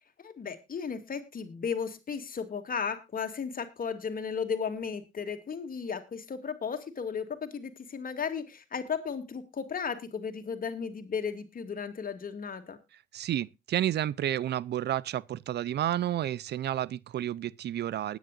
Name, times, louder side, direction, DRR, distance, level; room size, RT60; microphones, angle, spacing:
voice 1, 0.2-12.8, left 6 dB, 50° left, 2.4 m, -35 dB
voice 2, 13.1-18.2, right 12 dB, 70° right, 0.5 m, -31 dB
20.0 x 9.4 x 2.5 m
cardioid pair, 75°, 18 cm